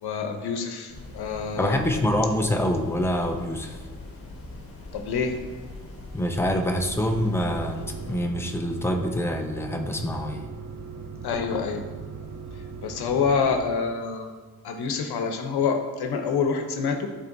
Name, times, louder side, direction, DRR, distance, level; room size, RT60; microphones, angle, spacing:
voice 1, 0.0-1.8 4.9-5.4 11.2-11.9 12.8-14.3 14.6-17.1, left 5 dB, 85° left, 5 dB, 0.8 m, -27 dB
sound 1, 0.9-8.2, left 2 dB, 35° left, 1.3 m, -41 dB
voice 2, 1.5-3.8 6.1-10.5, left 1 dB, 5° left, 4 dB, 0.4 m, -26 dB
sound 2, 6.7-13.7, right 4 dB, 60° right, 1.5 m, -39 dB
10.0 x 4.4 x 2.6 m, 1.4 s
wide cardioid pair, 175°, 38 cm